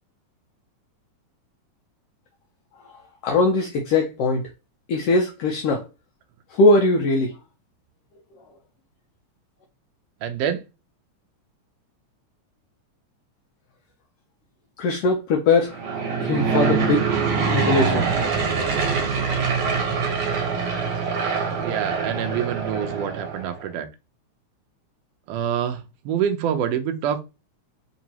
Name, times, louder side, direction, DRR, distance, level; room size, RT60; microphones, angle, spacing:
voice 1, 3.2-4.5 4.9-5.9 6.5-7.4 14.8-15.8 16.2-17.0 17.5-18.1, left 2 dB, 85° left, 1.3 m, -21 dB
voice 2, 10.2-10.6 21.6-23.9 25.3-27.2, right 8 dB, 80° right, 1.4 m, -26 dB
Aircraft / Engine, 15.6-23.6, right 5 dB, 60° right, 1.6 m, -24 dB
4.5 x 2.9 x 2.8 m
omnidirectional pair, 3.4 m